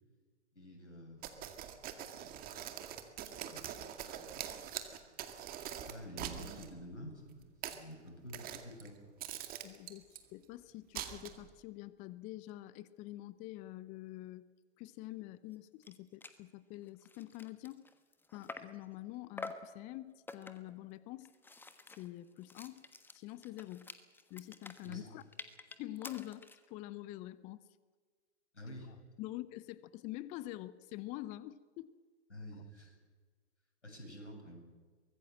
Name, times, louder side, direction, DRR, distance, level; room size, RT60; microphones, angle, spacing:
voice 1, 0.5-1.2 2.4-2.8 3.4-3.7 4.4-9.1 24.8-25.1 28.5-28.9 32.3-33.0 33.8-34.6, equal, 85° left, 2 dB, 7.8 m, -50 dB
sound 1, 1.2-6.7 7.4-7.8 8.3-8.9 9.2-10.2 11.0-11.5, right 10 dB, 25° right, 2.1 m, -44 dB
voice 2, 9.6-10.0 10.3-14.5 14.8-17.8 18.3-21.3 22.0-22.8 23.1-23.9 24.3-25.2 25.8-27.7 29.2-31.9, left 16 dB, 20° left, 17 dB, 0.6 m, -46 dB
sound 2, 15.5-15.6 15.8-16.0 16.2-16.4 16.9-18.8 19.4-19.7 20.3-20.8 21.2-26.7, left 3 dB, 5° left, 1.3 m, -49 dB
24.0 x 20.0 x 7.7 m, 1.5 s
figure-of-eight pair, 115°, 34 cm